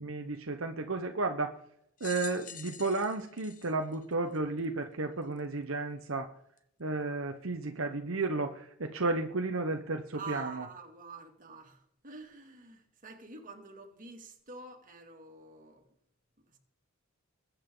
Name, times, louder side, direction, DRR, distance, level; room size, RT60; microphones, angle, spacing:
voice 1, 0.0-1.5 2.0-6.3 6.8-10.6, right 3 dB, 70° right, 1.0 m, -33 dB
sound 1, 2.0-4.7 5.4-5.5 6.6-6.7, left 9 dB, 40° left, 1.1 m, -46 dB
voice 2, 10.1-15.8 16.5-16.6, right 4 dB, 40° right, 2.5 m, -47 dB
21.5 x 8.7 x 3.9 m
head